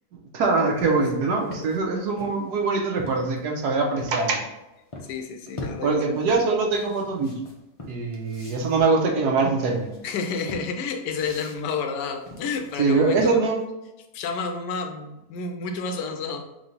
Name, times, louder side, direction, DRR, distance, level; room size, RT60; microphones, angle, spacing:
voice 1, 0.3-4.4 5.8-7.3 7.9-9.9 12.8-13.6, right 3 dB, 75° right, 1 dB, 1.3 m, -23 dB
sound 1, 0.6-4.2 4.9-5.2 5.5-13.6, left 1 dB, 45° left, 0.4 m, -41 dB
voice 2, 5.1-6.1 10.0-13.4 14.1-16.5, left 5 dB, 85° left, 5 dB, 1.2 m, -30 dB
3.7 x 3.2 x 3.9 m, 0.94 s
omnidirectional pair, 1.8 m